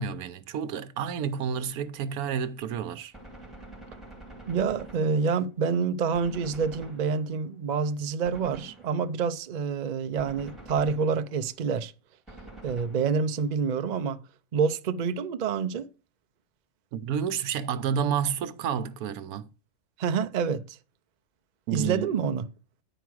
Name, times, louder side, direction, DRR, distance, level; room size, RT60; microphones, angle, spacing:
voice 1, 0.0-3.1 16.9-19.5 21.7-22.1, right 7 dB, 80° right, 1.2 m, -30 dB
Gunshot gunfire, 3.1-5.6 6.1-7.5 8.2-9.3 10.2-11.6 12.3-13.5, right 2 dB, ahead, 3.0 m, -47 dB
voice 2, 4.5-11.9 12.6-14.2 14.5-15.9 20.0-20.8 21.7-22.4, right 5 dB, 60° right, 0.4 m, -27 dB
10.0 x 4.7 x 6.1 m
omnidirectional pair, 1.6 m